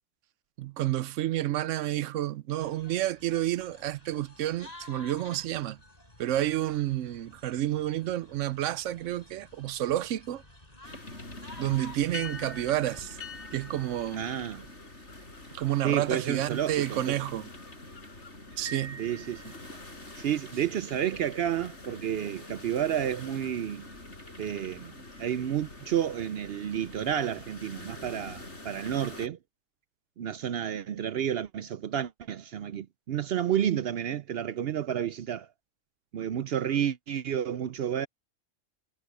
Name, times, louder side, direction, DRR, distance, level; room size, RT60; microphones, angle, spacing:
voice 1, 0.6-5.8 6.2-10.4 11.6-13.2 13.5-14.3 15.5-17.5 18.6-19.0, right 13 dB, 85° right, 1.0 m, -30 dB
sound 1, 2.6-14.7, left 2 dB, 30° left, 5.1 m, -52 dB
sound 2, 10.8-29.3, left 2 dB, 70° left, 5.1 m, -45 dB
voice 2, 14.1-14.6 15.8-17.2 19.0-19.5 20.2-23.9 24.4-24.9 25.2-29.4 30.2-35.5 36.1-38.1, right 9 dB, 60° right, 0.7 m, -30 dB
Piano, 18.6-20.1, right 4 dB, 10° left, 0.7 m, -45 dB
omnidirectional pair, 1.3 m